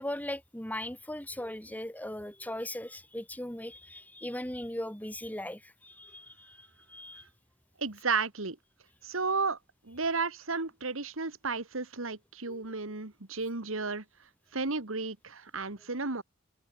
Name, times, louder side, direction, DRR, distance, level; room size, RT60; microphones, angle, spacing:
voice 1, 0.0-7.2 12.5-12.6, left 1 dB, 10° left, 3.2 m, -39 dB
voice 2, 7.8-8.6 9.0-9.6 9.8-14.0 14.5-16.2, right 4 dB, 80° right, 2.1 m, -33 dB
head